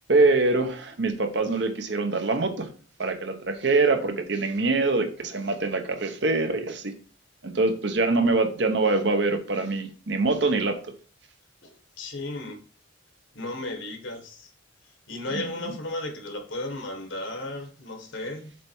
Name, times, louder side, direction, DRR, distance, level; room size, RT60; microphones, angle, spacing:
voice 1, 0.1-2.7 3.0-6.9 7.4-10.8 15.3-15.7, right 3 dB, 60° right, 1.0 m, -24 dB
voice 2, 11.6-12.6 13.3-14.5 15.1-18.6, left 2 dB, 75° left, 1.4 m, -35 dB
7.4 x 3.4 x 4.6 m
head